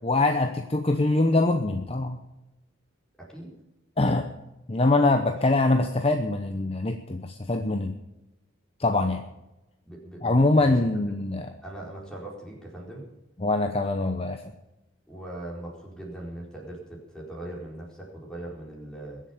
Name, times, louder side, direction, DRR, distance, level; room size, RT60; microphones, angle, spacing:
voice 1, 0.0-2.2 4.0-4.3 4.7-8.0 8.8-9.2 10.2-11.5 13.4-14.5, left 2 dB, 30° left, 6 dB, 0.8 m, -23 dB
voice 2, 3.2-3.5 5.2-5.3 9.8-10.7 11.6-13.0 15.1-19.2, right 1 dB, 5° left, -3 dB, 4.4 m, -40 dB
21.5 x 7.5 x 7.0 m, 0.97 s
head